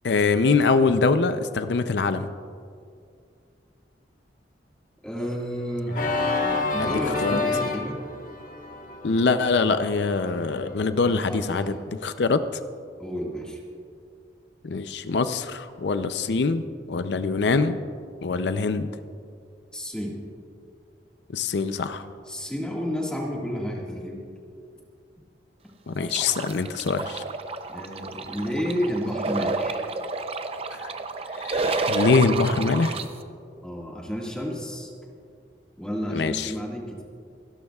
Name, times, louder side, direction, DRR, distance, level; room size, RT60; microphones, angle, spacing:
voice 1, 0.0-2.3 6.8-6.9 7.2-7.4 9.0-12.4 14.6-16.6 16.9-17.8 18.2-19.0 21.3-22.1 25.9-27.2 30.7-30.9 31.4-33.0 36.1-36.5, left 4 dB, 70° left, 11 dB, 0.5 m, -24 dB
voice 2, 5.0-6.0 6.5-8.0 11.0-11.9 13.0-13.6 19.7-20.2 22.3-24.2 27.7-29.9 33.6-34.9 35.8-37.0, equal, 5° left, -2 dB, 1.8 m, -31 dB
Organ, 5.9-10.7, left 3 dB, 50° left, 1.3 m, -29 dB
sound 1, 26.1-33.0, right 3 dB, 35° right, 0.6 m, -30 dB
28.5 x 11.5 x 2.4 m, 2.3 s
head